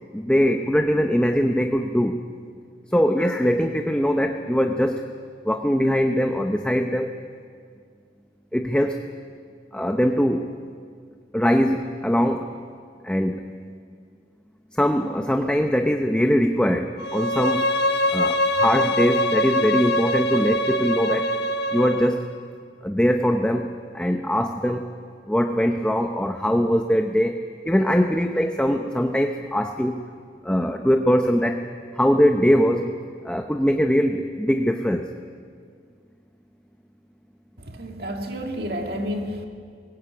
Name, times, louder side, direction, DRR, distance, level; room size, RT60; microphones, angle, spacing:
voice 1, 0.1-2.2 2.9-5.0 5.4-7.1 8.5-9.0 9.7-10.5 11.3-12.5 13.0-13.5 14.7-17.7 18.1-21.3 21.7-22.3 22.8-23.7 23.9-24.9 25.3-30.0 30.4-31.6 32.0-32.9 33.2-35.1, equal, 5° left, 4 dB, 0.7 m, -21 dB
Bowed string instrument, 17.0-22.1, left 1 dB, 70° left, 1.5 m, -23 dB
voice 2, 37.6-39.5, equal, 60° right, 3 dB, 2.2 m, -30 dB
21.0 x 18.5 x 8.6 m, 2.1 s
head